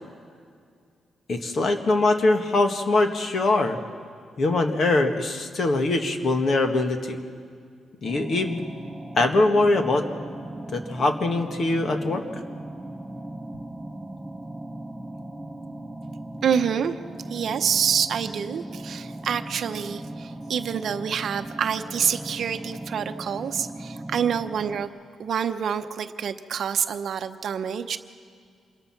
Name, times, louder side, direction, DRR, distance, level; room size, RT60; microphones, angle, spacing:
voice 1, 1.3-3.8 4.4-7.2 8.0-8.6 9.2-10.1 10.7-12.2, left 2 dB, 45° left, 5 dB, 1.6 m, -22 dB
sound 1, 8.0-24.8, right 1 dB, 5° right, 1.3 m, -38 dB
voice 2, 16.4-17.0 17.3-24.9 25.2-28.0, right 7 dB, 55° right, 9 dB, 0.8 m, -27 dB
26.0 x 22.0 x 6.0 m, 2.2 s
cardioid pair, 145°, 0 cm